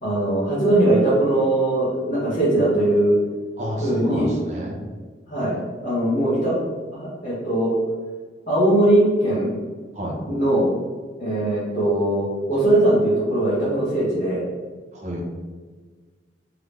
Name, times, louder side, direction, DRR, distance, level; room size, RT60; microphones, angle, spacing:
voice 1, 0.0-3.1 3.8-4.3 5.3-6.6 6.9-7.7 8.5-9.5 10.2-10.7 11.2-14.5, right 1 dB, 40° left, -12 dB, 1.5 m, -20 dB
voice 2, 3.6-4.7 9.9-10.1 14.9-15.2, equal, 40° right, -3 dB, 1.0 m, -29 dB
3.7 x 3.5 x 3.4 m, 1.4 s
head